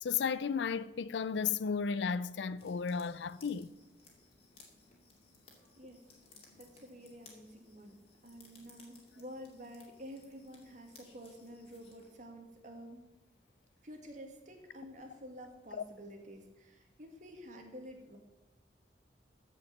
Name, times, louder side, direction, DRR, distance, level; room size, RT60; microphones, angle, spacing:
voice 1, 0.0-3.7 15.7-15.8, left 6 dB, 75° left, 0.4 m, -34 dB
sound 1, 2.6-12.2, left 3 dB, 35° left, 2.6 m, -61 dB
voice 2, 6.6-13.1 13.8-18.2, equal, 45° right, 2.0 m, -50 dB
14.5 x 5.5 x 7.2 m
head